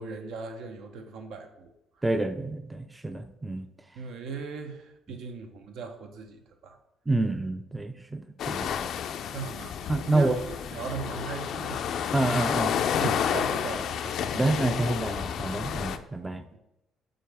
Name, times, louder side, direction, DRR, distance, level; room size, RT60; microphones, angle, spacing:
voice 1, 0.0-2.0 3.9-6.8 9.3-11.9 13.0-14.2 16.5-16.6, right 5 dB, 75° right, 5 dB, 0.9 m, -39 dB
voice 2, 2.0-3.7 7.1-8.7 9.9-10.4 12.1-12.8 13.0-13.2 14.3-16.4, right 2 dB, 10° right, 8 dB, 0.4 m, -28 dB
sound 1, 8.4-16.0, left 8 dB, 65° left, 0.4 m, -30 dB
7.7 x 4.0 x 3.5 m, 0.89 s
cardioid pair, 105°, 0 cm